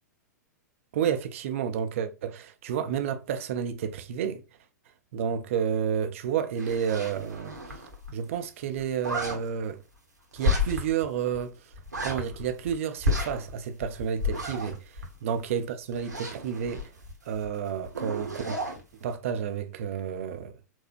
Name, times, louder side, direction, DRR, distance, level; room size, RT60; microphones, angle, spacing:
voice 1, 0.9-4.4 5.1-7.5 8.1-9.8 10.3-11.5 12.0-14.8 15.2-16.9 17.3-18.6 19.0-20.6, right 8 dB, 50° right, 0.5 m, -30 dB
sound 1, 6.6-8.1 8.3-8.4 8.7-9.4 10.4-11.0 11.3-11.4 11.7-12.7 13.0-15.5 15.9-17.5 17.8-18.8, left 2 dB, 80° right, 1.0 m, -31 dB
4.4 x 2.0 x 2.5 m
figure-of-eight pair, 100°, 9 cm